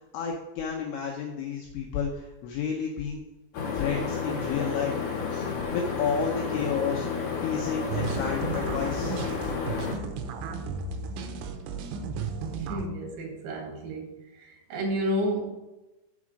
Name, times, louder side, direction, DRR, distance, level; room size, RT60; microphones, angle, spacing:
voice 1, 0.0-3.2 3.7-4.9 5.3-7.1 7.4-9.2, left 6 dB, 80° left, 0 dB, 2.8 m, -31 dB
sound 1, 3.5-9.9, left 5 dB, 60° left, 2.3 m, -31 dB
sound 2, 7.9-12.9, right 5 dB, 85° right, 2.9 m, -34 dB
voice 2, 12.7-14.1 14.7-15.5, equal, 65° right, 1 dB, 3.4 m, -30 dB
7.3 x 4.9 x 6.1 m, 1.0 s
omnidirectional pair, 5.9 m